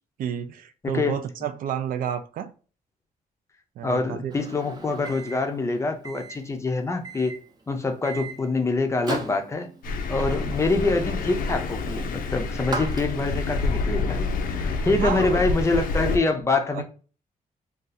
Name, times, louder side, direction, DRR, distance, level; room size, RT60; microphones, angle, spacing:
voice 1, 0.2-2.5 3.8-4.3 14.8-15.4 16.7-16.8, right 9 dB, 75° right, 0.4 m, -30 dB
voice 2, 0.8-1.2 3.8-7.4 7.7-9.7 10.1-14.3 14.5-16.8, left 3 dB, 20° left, 0.4 m, -25 dB
Microwave oven, 4.3-13.5, right 2 dB, 30° right, 0.6 m, -38 dB
Thunder, 9.8-16.2, left 3 dB, 75° left, 0.4 m, -28 dB
2.6 x 2.3 x 3.9 m
wide cardioid pair, 160°, 15 cm